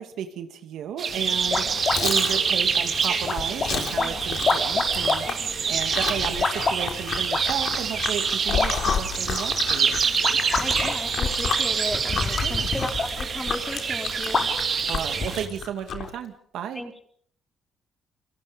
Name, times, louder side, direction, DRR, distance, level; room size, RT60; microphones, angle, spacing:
voice 1, 0.0-10.0 12.4-12.7 14.9-16.8, right 8 dB, 80° right, 7 dB, 2.4 m, -34 dB
sound 1, 1.0-15.5, right 6 dB, 50° right, 3.1 m, -26 dB
sound 2, 1.1-15.7, left 4 dB, 40° left, 5.1 m, -30 dB
Chewing mastication, 1.3-16.2, left 7 dB, 60° left, 3.5 m, -32 dB
voice 2, 10.5-14.5 16.7-17.0, equal, 5° left, 4 dB, 4.2 m, -35 dB
29.5 x 23.5 x 5.3 m, 0.62 s
cardioid pair, 90°, 0 cm